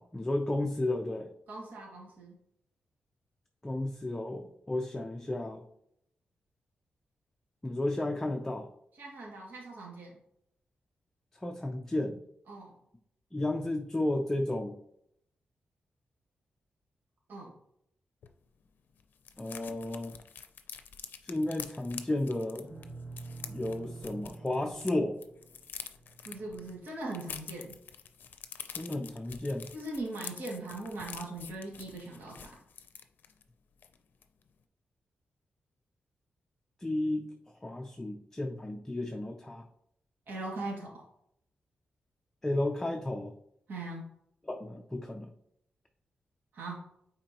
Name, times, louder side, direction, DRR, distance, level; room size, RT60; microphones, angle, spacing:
voice 1, 0.0-1.3 3.6-5.6 7.6-8.7 11.4-12.2 13.3-14.8 19.4-20.2 21.2-22.7 23.5-25.2 28.8-29.7 36.8-37.3 37.6-39.6 42.4-43.3 44.4-45.3, left 1 dB, 10° left, 3 dB, 0.5 m, -33 dB
voice 2, 1.5-2.4 9.0-10.1 12.5-12.7 17.3-17.5 26.3-27.8 29.7-32.5 40.3-41.0 43.7-44.1 46.5-46.8, right 2 dB, 70° right, -3 dB, 2.2 m, -40 dB
sound 1, 18.2-18.3 18.6-18.7 18.9-24.9 25.2-33.4 33.8-34.0 34.2-34.5, left 7 dB, 75° left, 0.5 m, -47 dB
sound 2, 22.6-27.1, right 3 dB, 25° right, 2.1 m, -47 dB
8.8 x 4.4 x 3.0 m, 0.72 s
wide cardioid pair, 170°, 3 cm